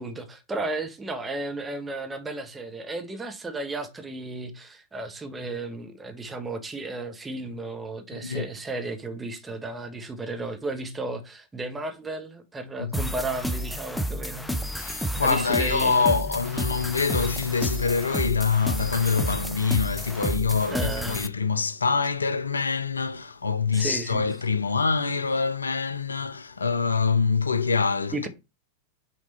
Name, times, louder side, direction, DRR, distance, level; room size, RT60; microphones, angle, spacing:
voice 1, 0.0-14.5 15.2-16.1 20.7-21.2 23.7-24.3 28.1-28.3, right 2 dB, 15° right, 1.3 m, -34 dB
voice 2, 8.1-8.5 12.8-13.1 14.8-28.3, left 5 dB, 75° left, 0.4 m, -25 dB
sound 1, 12.9-21.3, equal, 5° left, 0.7 m, -31 dB
6.2 x 3.7 x 4.2 m
figure-of-eight pair, 90°, 0 cm